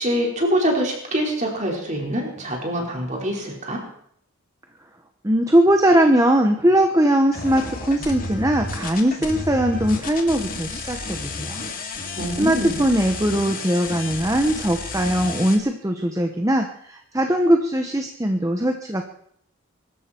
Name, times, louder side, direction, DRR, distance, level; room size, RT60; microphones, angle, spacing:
voice 1, 0.0-3.8 12.1-12.8, equal, 35° right, 0 dB, 4.8 m, -25 dB
voice 2, 5.2-11.6 12.4-19.1, right 1 dB, 15° right, 5 dB, 1.0 m, -20 dB
sound 1, 7.3-15.6, left 3 dB, 40° left, 2.4 m, -32 dB
23.5 x 13.0 x 4.5 m, 0.68 s
head